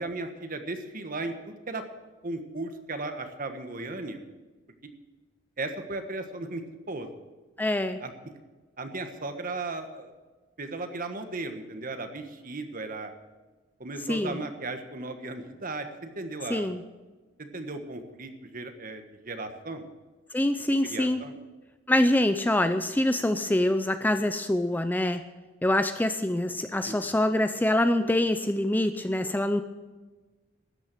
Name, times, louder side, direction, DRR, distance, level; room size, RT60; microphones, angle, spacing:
voice 1, 0.0-1.8 2.2-4.2 5.6-7.1 8.0-8.1 8.8-10.1 10.6-13.1 13.8-16.7 17.4-19.9 20.9-21.4 26.8-27.0, right 2 dB, 45° right, 7 dB, 1.4 m, -36 dB
voice 2, 7.6-8.0 14.1-14.4 16.5-16.8 20.3-21.2 21.9-25.2 25.6-29.6, left 1 dB, 10° left, 9 dB, 0.5 m, -25 dB
13.0 x 9.6 x 7.8 m, 1.3 s
head